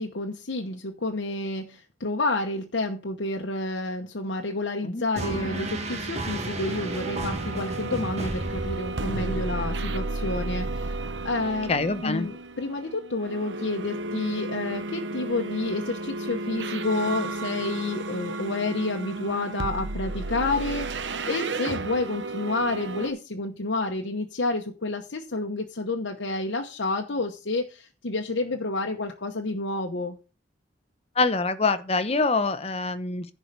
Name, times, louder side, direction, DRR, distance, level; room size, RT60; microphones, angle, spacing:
voice 1, 0.0-11.0 11.2-11.7 12.0-30.2, left 2 dB, 75° left, 1.0 m, -29 dB
sound 1, 5.2-9.4, right 2 dB, 35° right, 1.7 m, -33 dB
sound 2, 5.2-23.1, right 2 dB, 75° right, 0.9 m, -33 dB
voice 2, 11.7-12.3 31.2-33.3, left 3 dB, 35° left, 0.8 m, -25 dB
11.0 x 4.7 x 6.7 m
head